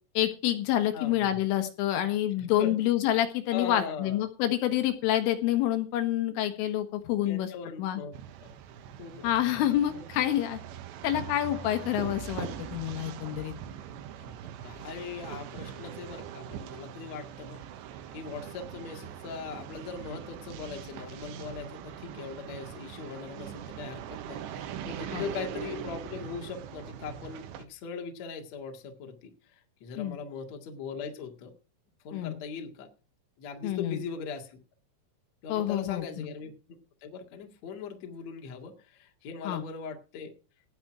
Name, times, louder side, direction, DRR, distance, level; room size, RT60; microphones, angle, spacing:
voice 1, 0.2-7.5 7.8-8.0 9.2-10.6 11.0-13.5 25.1-25.3 30.0-30.2 32.1-32.4 33.6-34.0 35.5-36.3 39.5-39.6, left 12 dB, 80° left, 7 dB, 3.8 m, -28 dB
voice 2, 0.9-1.4 2.4-2.8 3.5-4.2 7.3-8.1 8.4-8.5 9.0-9.3 9.9-10.1 14.2-14.3 14.6-17.6 18.1-31.5 32.0-32.9 33.4-34.6 35.4-40.3, left 5 dB, 50° left, 3 dB, 2.1 m, -40 dB
sound 1, 8.1-27.7, right 9 dB, 75° right, 3.0 m, -42 dB
17.5 x 6.2 x 6.0 m, 0.34 s
omnidirectional pair, 5.9 m